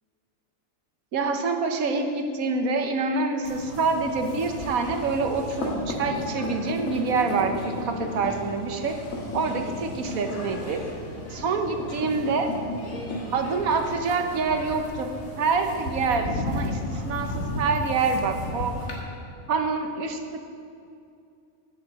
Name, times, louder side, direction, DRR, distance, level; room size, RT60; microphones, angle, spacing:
voice 1, 1.1-9.0 9.3-10.8 11.3-12.5 13.3-18.7 19.5-20.4, right 4 dB, 90° right, 5 dB, 1.4 m, -26 dB
sound 1, 3.4-19.0, left 1 dB, 75° left, 2.0 m, -34 dB
9.6 x 7.7 x 7.9 m, 2.5 s
omnidirectional pair, 1.4 m